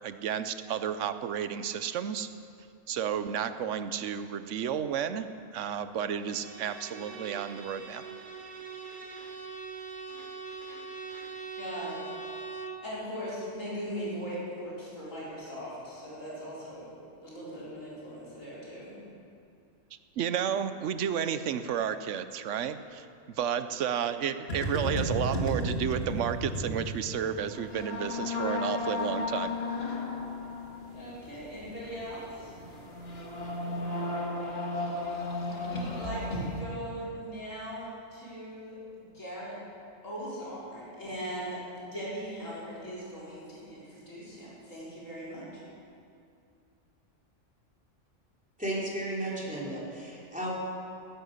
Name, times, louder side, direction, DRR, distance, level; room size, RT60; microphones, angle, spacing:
voice 1, 0.0-2.3 2.9-8.1 20.2-29.5, right 8 dB, 75° right, 11 dB, 1.0 m, -32 dB
Bowed string instrument, 6.2-12.9, right 5 dB, 40° right, 1.3 m, -42 dB
voice 2, 11.6-12.0 12.8-16.9 17.2-19.0 30.9-32.5 35.6-39.6 40.0-45.6, equal, 85° left, -8 dB, 5.1 m, -39 dB
sound 1, 24.5-36.6, left 1 dB, 50° left, 2.0 m, -34 dB
voice 3, 48.6-50.5, right 1 dB, 5° right, -5 dB, 3.2 m, -34 dB
16.5 x 10.0 x 6.5 m, 2.5 s
omnidirectional pair, 1.3 m